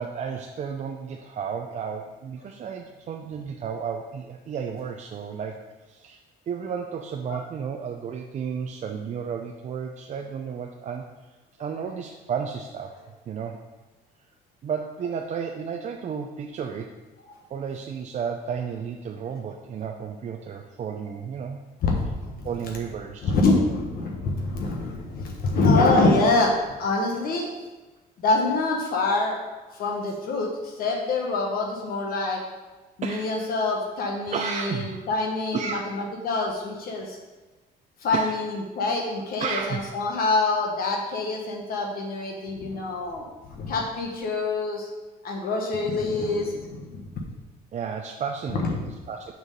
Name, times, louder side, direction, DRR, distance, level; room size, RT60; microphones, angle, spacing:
voice 1, 0.0-6.2 6.5-11.1 11.6-12.9 13.3-13.6 14.6-16.9 17.5-21.6 22.4-23.3 33.0-33.5 34.3-35.1 35.5-35.8 37.0-37.1 38.1-38.3 39.4-39.9 47.7-49.3, right 6 dB, 45° right, 2 dB, 0.6 m, -33 dB
voice 2, 21.8-22.5 23.2-26.5 26.8-27.5 28.2-29.4 29.7-32.4 33.0-37.2 38.0-44.9 45.2-47.0 48.6-48.7, left 3 dB, 60° left, 0 dB, 1.3 m, -25 dB
6.7 x 4.7 x 5.3 m, 1.2 s
cardioid pair, 110°, 17 cm